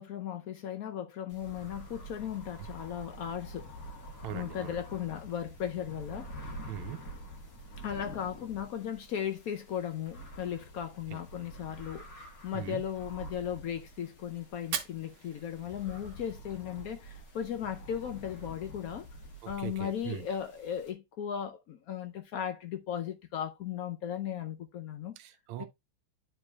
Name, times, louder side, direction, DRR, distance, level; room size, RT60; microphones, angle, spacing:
voice 1, 0.0-3.7 4.3-6.7 7.8-19.1 19.5-25.2 25.6-25.7, left 9 dB, 90° left, 0.7 m, -37 dB
sound 1, 1.3-20.9, equal, 45° left, 2.0 m, -47 dB
voice 2, 4.2-4.8 6.7-7.0 11.1-11.2 12.5-12.8 19.4-20.3 25.2-25.7, right 12 dB, 85° right, 1.6 m, -40 dB
Fire, 14.6-16.6, right 7 dB, 60° right, 1.4 m, -41 dB
11.5 x 4.5 x 2.3 m
omnidirectional pair, 2.3 m